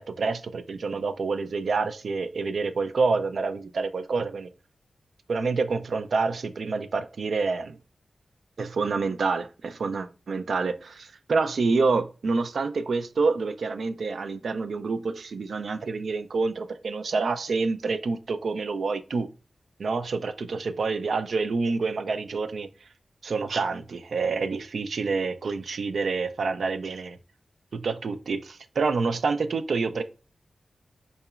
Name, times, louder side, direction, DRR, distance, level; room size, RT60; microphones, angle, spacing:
voice 1, 0.0-4.5 5.3-7.8 8.6-19.3 19.8-22.7 23.2-27.2 27.7-30.0, right 4 dB, 80° right, 0.3 m, -27 dB
4.0 x 2.8 x 2.3 m
wide cardioid pair, 125°, 0 cm